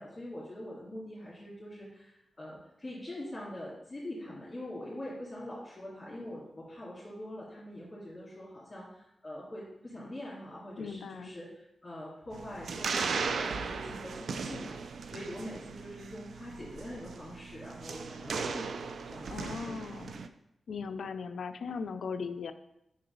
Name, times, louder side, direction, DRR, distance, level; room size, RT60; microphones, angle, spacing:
voice 1, 0.0-20.1, left 1 dB, 25° left, -9 dB, 1.9 m, -44 dB
voice 2, 10.8-11.3 19.3-20.1 20.7-22.5, left 5 dB, 85° left, 9 dB, 0.4 m, -38 dB
sound 1, 12.3-20.3, right 5 dB, 75° right, 0.4 m, -37 dB
5.4 x 3.9 x 5.2 m, 0.80 s
wide cardioid pair, 125°, 0 cm